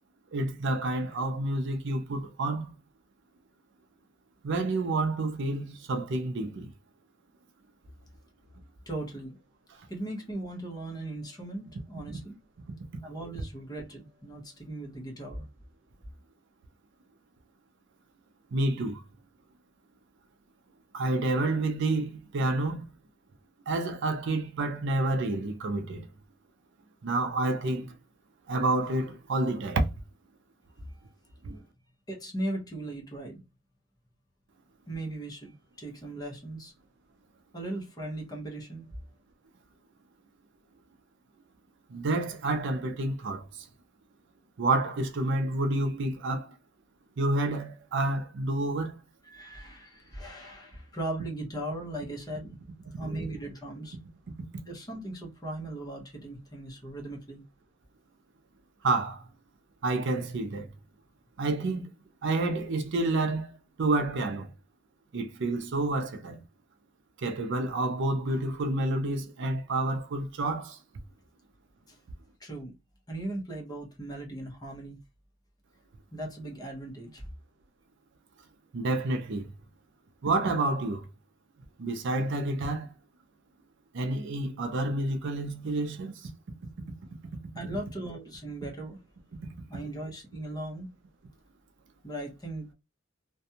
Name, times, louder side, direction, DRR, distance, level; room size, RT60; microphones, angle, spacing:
voice 1, 0.3-2.7 4.4-6.7 18.5-19.0 20.9-22.8 23.7-26.1 27.0-27.9 28.5-29.9 31.4-31.6 41.9-43.6 44.6-46.5 47.2-49.0 54.5-54.6 58.8-59.2 59.8-60.7 61.4-61.9 62.2-63.5 63.8-64.5 65.1-66.4 67.2-70.8 78.7-79.5 80.2-81.1 81.8-82.9 83.9-86.3, right 2 dB, 60° right, 0.5 m, -29 dB
voice 2, 8.9-9.4 9.9-12.4 13.0-15.5 30.9-31.0 32.1-33.4 34.9-36.7 37.5-38.9 49.2-52.5 53.0-54.0 54.7-57.4 71.9-72.0 72.4-72.7 73.1-75.0 76.1-77.3 87.5-89.0 89.7-90.9 92.0-92.7, right 1 dB, 20° left, 0.8 m, -38 dB
2.5 x 2.2 x 2.7 m
head